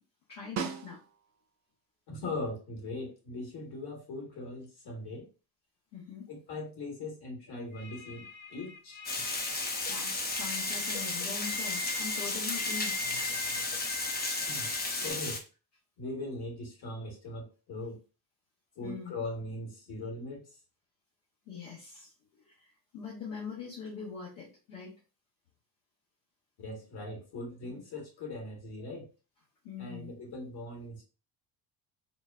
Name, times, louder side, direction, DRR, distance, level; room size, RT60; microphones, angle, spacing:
voice 1, 0.3-1.0 5.9-6.3 9.9-12.9 18.8-19.1 21.5-24.9 29.6-30.1, left 6 dB, 70° left, -7 dB, 1.4 m, -42 dB
Snare drum, 0.6-1.5 5.9-6.0, right 7 dB, 35° right, 0.5 m, -38 dB
voice 2, 2.1-5.3 6.3-9.0 14.5-14.7 15.0-15.4 16.0-18.0 18.7-20.5 26.6-29.1 29.8-31.0, left 2 dB, 50° left, 0 dB, 1.7 m, -40 dB
sound 1, 7.7-15.1, left 2 dB, 85° left, 0.6 m, -42 dB
Water, 9.0-15.4, left 3 dB, 20° left, 0.6 m, -33 dB
3.9 x 2.2 x 2.5 m, 0.33 s
hypercardioid pair, 55°, 50 cm